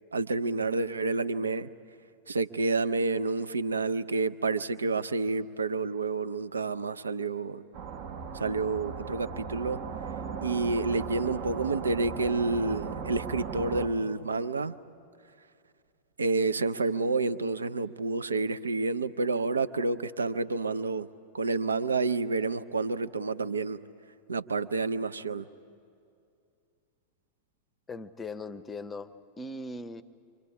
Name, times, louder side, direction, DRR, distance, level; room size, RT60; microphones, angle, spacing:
voice 1, 0.1-1.7 2.3-7.6 8.3-9.8 10.4-14.8 16.2-21.1 21.3-23.8 24.3-25.5, right 3 dB, 75° right, 12 dB, 0.5 m, -29 dB
sound 1, 7.7-13.9, right 6 dB, 50° right, 1.6 m, -37 dB
voice 2, 27.9-30.0, left 2 dB, 15° left, 14 dB, 0.8 m, -39 dB
28.0 x 25.0 x 5.0 m, 2.5 s
figure-of-eight pair, 90°, 0 cm